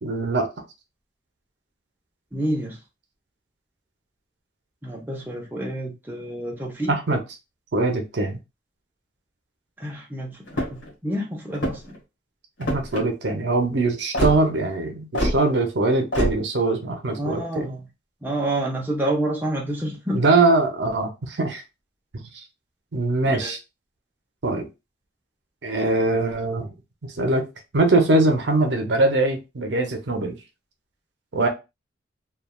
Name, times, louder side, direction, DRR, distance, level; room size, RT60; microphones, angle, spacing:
voice 1, 0.0-0.5 6.9-7.2 7.7-8.4 12.6-17.7 20.1-21.6 22.1-22.3 22.9-23.6 24.4-24.7 25.6-26.7 27.0-27.4 27.7-30.4 31.3-31.5, right 2 dB, 65° right, 0.6 m, -22 dB
voice 2, 2.3-2.8 4.8-7.0 9.8-11.9 17.2-17.9 18.2-20.2 23.4-23.5, right 1 dB, 10° right, 0.5 m, -28 dB
sound 1, 10.5-10.9 11.5-12.0 12.6-13.0 14.1-14.4 15.1-15.4 16.1-16.4, equal, 85° left, 1.3 m, -24 dB
3.1 x 2.3 x 2.2 m
head